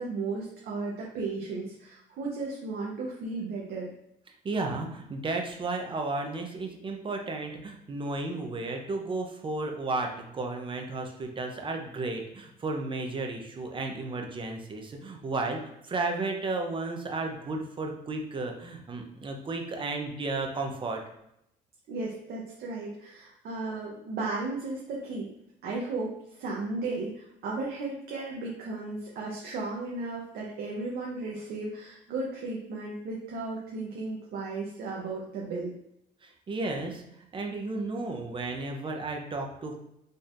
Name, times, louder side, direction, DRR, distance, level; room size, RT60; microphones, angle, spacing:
voice 1, 0.0-3.9 21.9-25.3 25.6-26.1 26.4-35.7, right 3 dB, 65° right, -3 dB, 0.8 m, -35 dB
voice 2, 4.4-21.0 36.2-37.0 37.3-39.8, right 3 dB, 30° right, 3 dB, 0.8 m, -33 dB
4.4 x 3.2 x 2.5 m, 0.78 s
cardioid pair, 110°, 17 cm